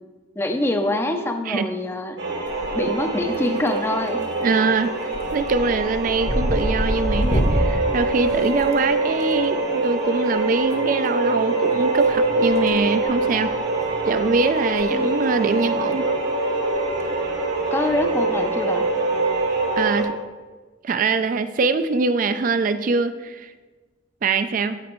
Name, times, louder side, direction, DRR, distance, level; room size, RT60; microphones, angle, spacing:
voice 1, 0.4-2.2 2.7-4.2 14.9-15.1 17.7-18.9, left 1 dB, 10° left, 6 dB, 0.5 m, -25 dB
sound 1, 2.2-20.0, right 2 dB, 65° right, 1.3 m, -24 dB
sound 2, 2.5-3.0 3.3-3.9 4.2-4.5 4.8-9.2 10.6-10.7 12.0-12.8 13.1-13.3 13.8-13.9 14.2-14.3 14.6-14.8 15.1-15.2 16.7-17.0, equal, 35° left, 0.9 m, -26 dB
voice 2, 4.4-13.6 14.1-16.1 19.8-20.1 20.8-23.5 24.2-24.8, right 4 dB, 40° right, 11 dB, 0.3 m, -23 dB
14.5 x 5.1 x 3.0 m, 1.3 s
head